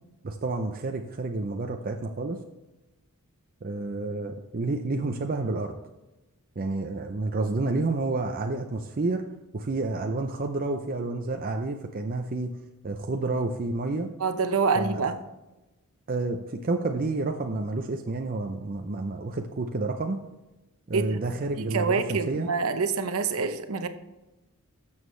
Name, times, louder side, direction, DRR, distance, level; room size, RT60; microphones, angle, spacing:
voice 1, 0.2-2.4 3.6-5.8 6.6-9.2 9.5-12.5 12.8-14.1 14.7-15.1 16.1-20.2 20.9-22.5, right 3 dB, 40° right, 4 dB, 0.6 m, -29 dB
voice 2, 14.2-15.2 20.9-21.2 21.6-23.9, right 4 dB, 70° right, 9 dB, 0.8 m, -26 dB
12.5 x 7.3 x 3.2 m, 1.0 s
head